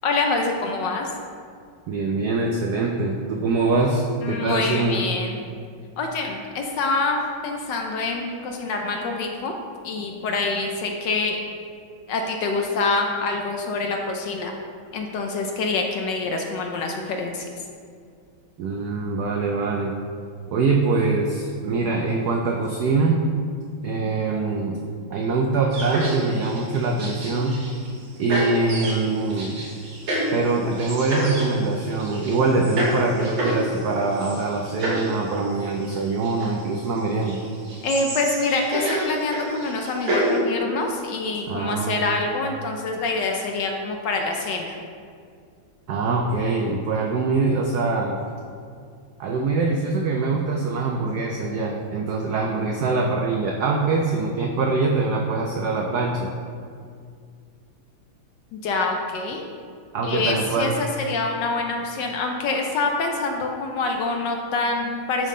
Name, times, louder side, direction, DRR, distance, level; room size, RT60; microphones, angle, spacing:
voice 1, 0.0-1.1 4.2-5.4 6.0-9.5 9.8-11.4 12.1-14.5 14.9-17.5 37.8-44.8 58.5-59.4 60.0-65.3, left 3 dB, 70° left, 2 dB, 1.1 m, -26 dB
voice 2, 1.9-5.1 18.6-19.9 20.5-23.2 23.8-24.8 25.1-27.7 28.2-29.6 30.3-37.4 41.5-42.1 45.9-48.2 49.2-56.3 59.9-60.8, right 3 dB, 80° right, 1 dB, 0.8 m, -23 dB
sound 1, 25.7-27.9 28.3-40.4, right 1 dB, 65° right, 2.0 m, -29 dB
10.5 x 3.6 x 3.7 m, 2.2 s
omnidirectional pair, 2.3 m